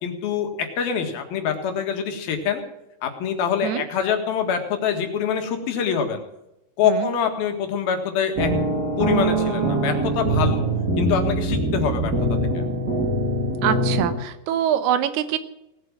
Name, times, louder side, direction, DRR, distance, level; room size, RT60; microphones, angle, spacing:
voice 1, 0.0-2.6 3.0-6.2 6.8-8.5 9.0-10.6 11.0-12.6, left 7 dB, 70° left, 5 dB, 3.5 m, -25 dB
sound 1, 8.3-14.1, right 2 dB, 30° right, 2.5 m, -23 dB
voice 2, 13.6-15.4, right 10 dB, 90° right, 11 dB, 3.1 m, -24 dB
18.5 x 7.8 x 7.3 m, 0.88 s
omnidirectional pair, 4.4 m